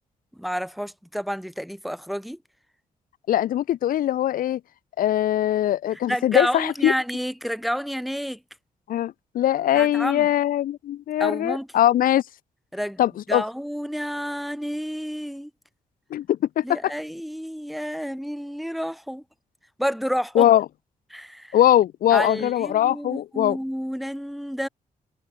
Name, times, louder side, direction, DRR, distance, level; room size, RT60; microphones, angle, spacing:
voice 1, 0.4-2.4 5.9-8.4 9.7-10.3 11.2-11.7 12.7-13.0 13.3-15.5 16.6-19.2 19.8-20.5 21.1-21.6 22.1-24.7, equal, ahead, 5.5 m, -30 dB
voice 2, 3.3-4.6 5.0-6.9 8.9-12.2 13.0-13.4 16.1-16.9 20.3-20.6 21.5-23.6, left 12 dB, 85° left, 1.0 m, -21 dB
wide cardioid pair, 180°, 14 cm